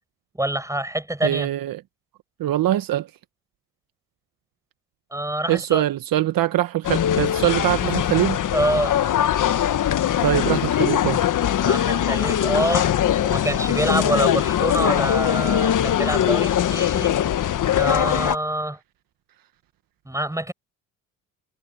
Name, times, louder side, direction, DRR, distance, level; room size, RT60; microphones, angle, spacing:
voice 1, 0.4-1.5 5.1-5.8 8.5-9.0 11.6-12.9 13.2-17.1 17.7-18.8 20.1-20.5, right 1 dB, 10° right, 7.3 m, -26 dB
voice 2, 1.2-1.8 2.4-3.1 5.5-8.4 10.2-11.3, right 13 dB, 65° right, 1.5 m, -22 dB
sound 1, 6.8-18.4, left 10 dB, 55° left, 1.6 m, -21 dB
hypercardioid pair, 60°, 38 cm